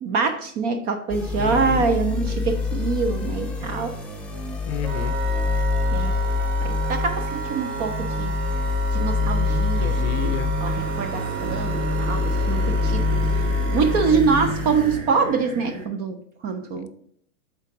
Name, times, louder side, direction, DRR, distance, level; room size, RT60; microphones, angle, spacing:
voice 1, 0.0-3.9 5.9-6.1 6.6-8.3 8.9-16.9, right 5 dB, 25° right, 7 dB, 0.4 m, -25 dB
sound 1, 1.1-15.0, left 4 dB, 5° left, 0.8 m, -25 dB
voice 2, 1.4-1.8 4.7-5.1 9.8-10.5 12.6-12.7 16.7-16.9, left 8 dB, 55° left, 13 dB, 0.6 m, -30 dB
Wind instrument woodwind instrument, 4.8-14.2, right 7 dB, 80° right, 0.9 m, -33 dB
sound 2, 10.7-15.9, right 3 dB, 60° right, 1.6 m, -35 dB
8.1 x 3.8 x 3.5 m, 0.63 s
hypercardioid pair, 105°, 41 cm